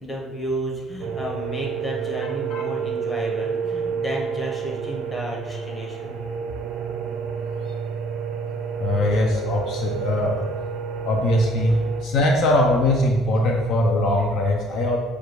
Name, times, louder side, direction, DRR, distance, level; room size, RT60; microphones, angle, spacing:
voice 1, 0.0-6.1 11.7-11.8, right 1 dB, 20° left, -1 dB, 1.0 m, -32 dB
sound 1, 1.0-12.0, right 6 dB, 75° right, 0.5 m, -30 dB
voice 2, 8.8-10.5 11.0-15.0, left 1 dB, 70° left, 0 dB, 0.6 m, -21 dB
6.3 x 2.3 x 3.1 m, 1.4 s
supercardioid pair, 90°, 0 cm